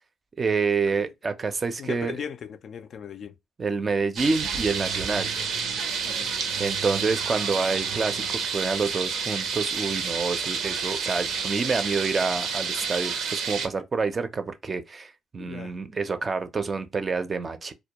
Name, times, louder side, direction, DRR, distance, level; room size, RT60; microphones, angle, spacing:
voice 1, 0.4-2.1 3.6-5.3 6.6-17.7, right 4 dB, 35° right, 0.4 m, -28 dB
voice 2, 1.8-3.3 6.0-6.3 15.4-15.8, left 7 dB, 60° left, 0.3 m, -38 dB
sound 1, 4.2-13.7, right 6 dB, 80° right, 0.6 m, -29 dB
2.2 x 2.1 x 2.8 m
cardioid pair, 90°, 0 cm